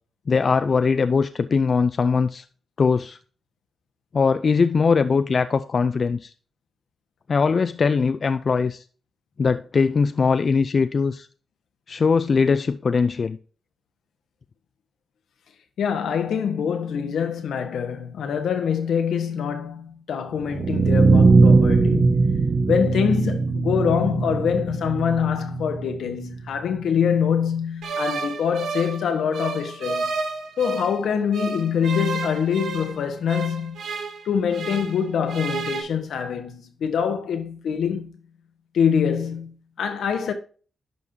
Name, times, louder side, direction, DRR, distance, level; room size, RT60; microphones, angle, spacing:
voice 1, 0.3-2.4 2.8-3.2 4.1-6.3 7.3-8.8 9.4-11.3 11.9-13.4, left 5 dB, 45° left, 0.4 m, -21 dB
voice 2, 15.8-22.4 22.7-30.2 30.6-33.8 34.2-38.2 38.7-40.3, left 7 dB, 85° left, 1.2 m, -24 dB
sound 1, 20.4-26.4, right 4 dB, 45° right, 1.0 m, -19 dB
sound 2, 27.8-31.0 31.3-35.0 35.3-35.8, right 4 dB, 90° right, 1.4 m, -31 dB
11.0 x 5.4 x 2.7 m
cardioid pair, 90°, 0 cm